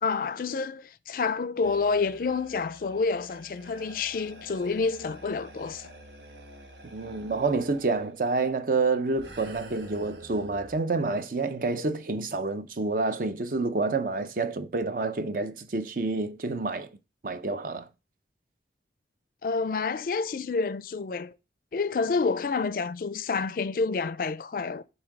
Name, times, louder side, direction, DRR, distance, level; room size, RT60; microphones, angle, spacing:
voice 1, 0.0-5.9 19.4-21.3 21.7-24.8, left 4 dB, 50° left, 0.4 m, -28 dB
sound 1, 1.6-8.1 9.2-10.8, right 1 dB, 80° right, 1.2 m, -48 dB
voice 2, 6.9-16.9 17.2-17.9, right 3 dB, 50° right, 0.5 m, -28 dB
7.4 x 2.7 x 4.7 m
head